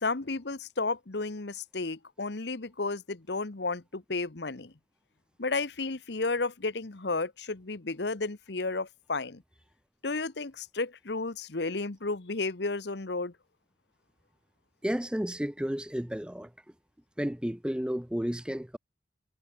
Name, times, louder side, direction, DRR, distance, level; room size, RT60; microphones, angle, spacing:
voice 1, 0.0-4.7 5.4-9.4 10.0-13.3, left 3 dB, 65° left, 1.1 m, -32 dB
voice 2, 14.8-16.5 17.2-18.8, equal, 5° right, 0.6 m, -32 dB
head